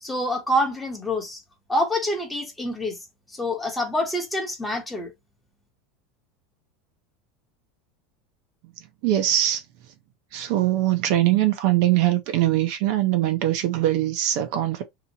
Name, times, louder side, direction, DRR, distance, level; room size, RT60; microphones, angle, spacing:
voice 1, 0.0-1.4 1.7-3.0 3.3-5.1, equal, 10° left, 0.8 m, -26 dB
voice 2, 9.0-9.6 10.3-14.8, right 13 dB, 55° right, 0.5 m, -22 dB
2.8 x 2.4 x 2.8 m
supercardioid pair, 160°, 0 cm